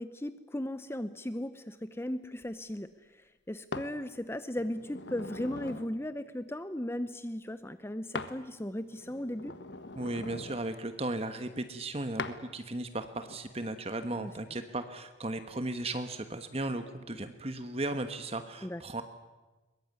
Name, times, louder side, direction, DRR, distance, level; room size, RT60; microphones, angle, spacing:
voice 1, 0.0-9.5 14.1-14.3 18.6-18.8, left 1 dB, 15° left, 12 dB, 0.7 m, -37 dB
sound 1, 3.7-3.9 4.6-5.9 8.1-8.4 8.8-10.6 12.2-12.4 13.1-13.4, left 3 dB, 65° left, 1.5 m, -41 dB
voice 2, 10.0-19.0, right 2 dB, 30° right, 9 dB, 1.3 m, -36 dB
23.0 x 21.0 x 9.6 m, 1.2 s
head